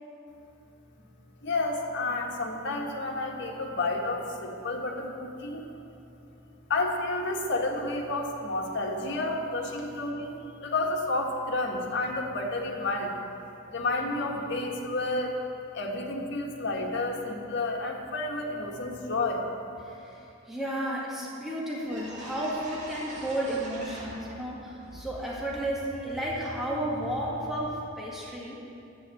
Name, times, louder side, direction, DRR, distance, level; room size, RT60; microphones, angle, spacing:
voice 1, 1.4-5.7 6.7-13.2 13.7-15.3 15.7-19.4, left 2 dB, 60° left, 0 dB, 1.6 m, -30 dB
voice 2, 19.8-28.6, right 1 dB, ahead, -6 dB, 1.8 m, -33 dB
sound 1, 21.4-21.5 21.8-24.5 24.8-27.8, right 1 dB, 40° right, 2.0 m, -43 dB
10.0 x 9.0 x 7.7 m, 2.8 s
head